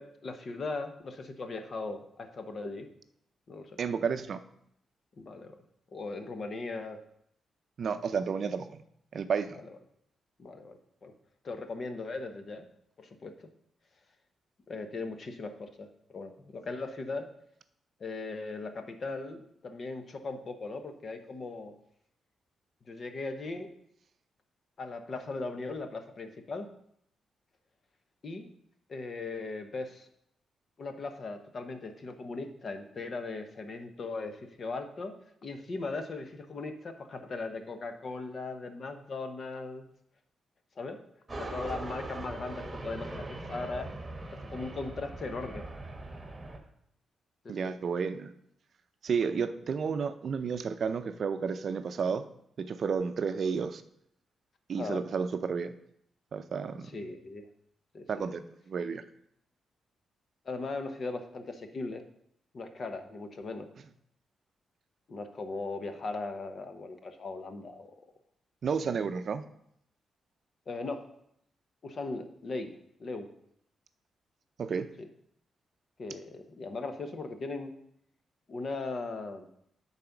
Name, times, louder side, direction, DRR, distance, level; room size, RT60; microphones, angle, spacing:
voice 1, 0.0-2.9 3.5-3.8 5.2-5.6 5.9-7.0 9.5-9.8 10.4-11.1 11.4-12.7 13.0-13.5 14.7-17.3 18.0-21.7 22.9-23.7 24.8-26.7 28.2-28.5 28.9-30.1 30.8-35.1 35.4-39.9 40.8-41.0 41.4-43.9 44.3-45.7 47.4-47.7 54.8-55.0 56.9-57.5 57.9-58.3 60.4-62.0 62.5-63.7 65.1-68.1 70.7-71.1 71.8-72.7 73.0-73.3 75.0-75.1 76.0-77.7 78.5-79.5, left 3 dB, 45° left, 7 dB, 0.9 m, -38 dB
voice 2, 3.8-4.4 7.8-8.8 9.1-9.6 47.5-48.3 49.0-52.3 52.6-53.8 54.7-55.7 56.3-56.9 58.1-59.0 68.6-69.4 74.6-74.9, right 6 dB, 55° right, 10 dB, 0.5 m, -31 dB
sound 1, 41.3-46.6, right 2 dB, 20° right, 1.4 m, -41 dB
8.8 x 4.2 x 5.9 m, 0.73 s
cardioid pair, 110°, 0 cm